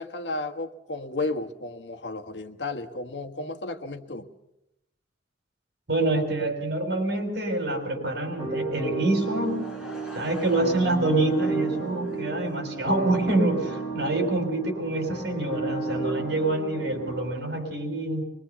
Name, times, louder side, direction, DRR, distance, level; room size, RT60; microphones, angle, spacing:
voice 1, 0.0-4.3, left 2 dB, 75° left, 6 dB, 1.4 m, -33 dB
voice 2, 5.9-9.6 10.1-18.2, right 2 dB, 65° right, 4 dB, 5.7 m, -26 dB
sound 1, 8.4-17.3, right 3 dB, 25° left, 7.7 m, -32 dB
Laughter / Crowd, 9.2-12.8, left 1 dB, 5° right, 5.2 m, -46 dB
24.0 x 22.5 x 6.9 m, 0.85 s
head